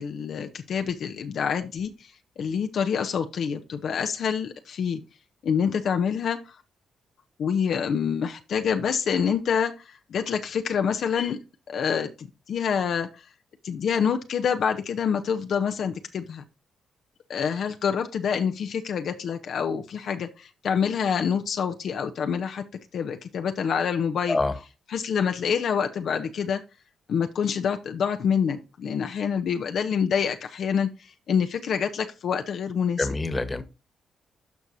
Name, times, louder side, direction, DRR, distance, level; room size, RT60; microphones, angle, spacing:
voice 1, 0.0-5.0 5.4-6.6 7.4-11.4 11.7-13.3 13.6-16.4 17.3-22.6 22.9-24.4 24.9-26.6 27.1-33.1, left 7 dB, 70° left, 6 dB, 0.8 m, -27 dB
voice 2, 33.0-33.6, left 2 dB, 25° left, 11 dB, 1.5 m, -25 dB
12.5 x 4.7 x 2.7 m, 0.29 s
supercardioid pair, 55°, 0 cm